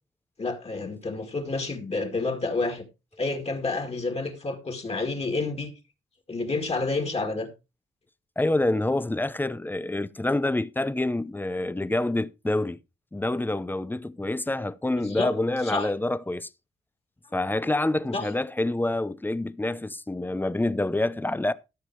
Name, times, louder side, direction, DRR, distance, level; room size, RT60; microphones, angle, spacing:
voice 1, 0.4-2.8 3.2-5.7 6.3-7.5 15.0-15.3 15.6-15.9 18.1-18.2, left 3 dB, 30° left, 2.1 m, -29 dB
voice 2, 8.4-12.8 13.1-16.5 17.3-21.5, left 2 dB, 10° left, 0.6 m, -27 dB
13.5 x 6.6 x 4.7 m
wide cardioid pair, 145°, 20 cm